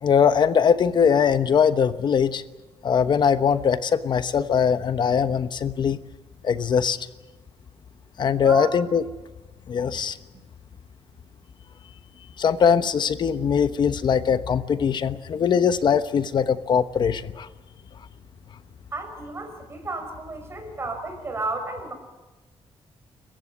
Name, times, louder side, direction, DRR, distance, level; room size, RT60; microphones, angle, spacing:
voice 1, 0.0-2.4 2.8-6.0 6.4-7.0 8.2-9.0 9.7-10.2 12.4-17.5, left 7 dB, 45° left, 12 dB, 1.1 m, -21 dB
voice 2, 8.4-8.7 18.9-21.9, right 2 dB, 25° right, 4 dB, 5.5 m, -32 dB
29.5 x 15.5 x 8.9 m, 1.1 s
wide cardioid pair, 175°, 10 cm